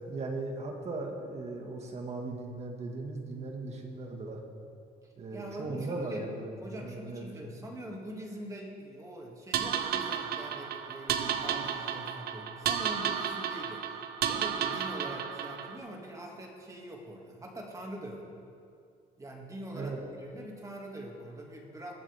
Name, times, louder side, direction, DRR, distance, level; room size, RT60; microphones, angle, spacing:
voice 1, 0.0-4.4 5.2-6.5 6.8-7.5 19.7-20.0, right 3 dB, 40° right, 2 dB, 1.9 m, -38 dB
voice 2, 5.3-6.3 6.6-13.9 14.3-18.2 19.2-21.9, right 1 dB, 20° right, -1 dB, 2.3 m, -43 dB
sound 1, 9.5-15.8, right 8 dB, 65° right, 0.8 m, -32 dB
21.5 x 7.4 x 3.6 m, 2.3 s
cardioid pair, 110°, 17 cm